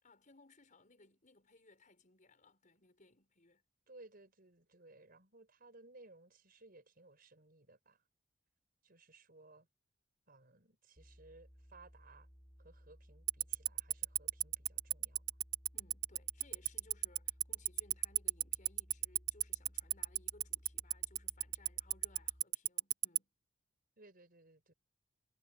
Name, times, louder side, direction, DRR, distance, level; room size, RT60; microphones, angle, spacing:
voice 1, 0.0-3.6 15.7-23.3, left 2 dB, 40° left, 5.7 m, -65 dB
voice 2, 3.9-8.1 8.8-9.7 10.3-12.3 12.6-15.3 24.0-24.7, right 2 dB, 50° right, 5.5 m, -61 dB
sound 1, 11.0-22.4, equal, ahead, 6.2 m, -61 dB
Tick-tock, 13.3-23.2, right 21 dB, 65° right, 0.3 m, -31 dB
head